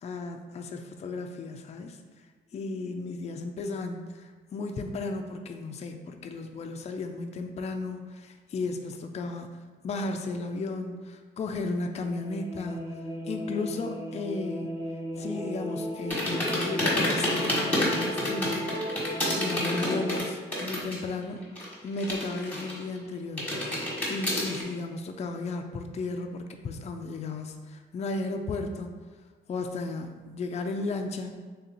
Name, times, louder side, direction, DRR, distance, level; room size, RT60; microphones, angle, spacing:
voice 1, 0.0-2.3 2.5-13.0 13.2-14.7 15.2-18.7 19.3-21.4 21.8-23.6 24.1-28.9 29.5-31.4, left 3 dB, 35° left, 5 dB, 0.4 m, -34 dB
sound 1, 11.8-20.2, equal, 15° right, 0.8 m, -35 dB
sound 2, 16.1-21.1 21.4-23.0 23.4-24.6, left 1 dB, 10° left, 1.3 m, -29 dB
3.4 x 2.8 x 3.9 m, 1.5 s
cardioid pair, 90°, 20 cm